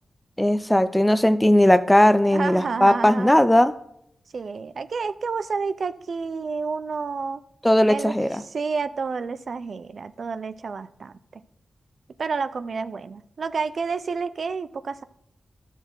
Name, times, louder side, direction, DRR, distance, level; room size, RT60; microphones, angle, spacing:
voice 1, 0.4-3.7 7.6-8.4, left 1 dB, 10° left, 12 dB, 0.5 m, -18 dB
voice 2, 2.3-3.4 4.3-7.4 7.9-11.4 12.2-15.0, right 5 dB, 65° right, 13 dB, 0.4 m, -30 dB
12.5 x 6.6 x 3.1 m, 0.74 s
wide cardioid pair, 85°, 0 cm